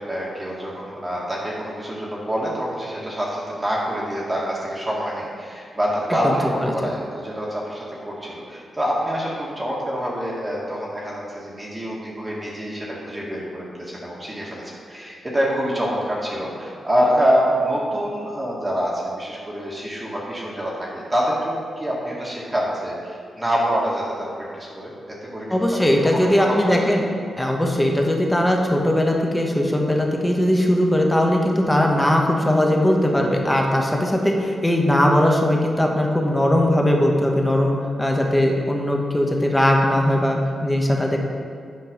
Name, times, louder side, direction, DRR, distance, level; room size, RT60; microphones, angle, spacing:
voice 1, 0.0-24.9 25.2-26.9, equal, 20° right, -5 dB, 1.9 m, -26 dB
voice 2, 25.5-27.0 27.4-41.2, left 1 dB, 10° left, 0 dB, 1.3 m, -19 dB
9.2 x 5.5 x 5.3 m, 2.3 s
cardioid pair, 90°, 0 cm